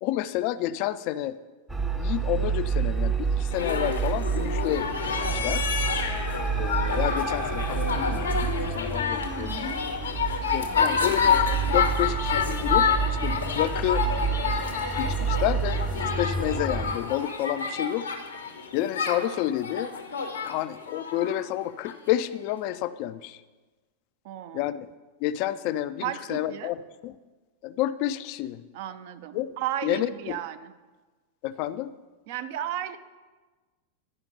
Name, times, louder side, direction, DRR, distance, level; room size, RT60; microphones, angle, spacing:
voice 1, 0.0-1.4 2.0-5.6 6.6-9.7 10.5-11.4 11.7-14.1 15.0-18.1 18.7-19.9 20.4-23.4 24.5-24.9 25.2-26.8 27.0-27.1 27.6-28.6 29.3-29.5 29.8-30.4 31.4-31.9, left 13 dB, 45° left, 14 dB, 0.3 m, -30 dB
sound 1, 1.7-17.0, right 5 dB, 5° right, 0.6 m, -29 dB
sound 2, 3.5-21.9 22.7-22.8, left 6 dB, 70° left, 0.8 m, -28 dB
voice 2, 9.4-9.8 24.2-24.6 26.0-26.7 28.7-30.7 32.3-33.0, right 11 dB, 50° right, 11 dB, 0.5 m, -34 dB
10.5 x 5.1 x 5.2 m, 1.3 s
figure-of-eight pair, 90°, 0 cm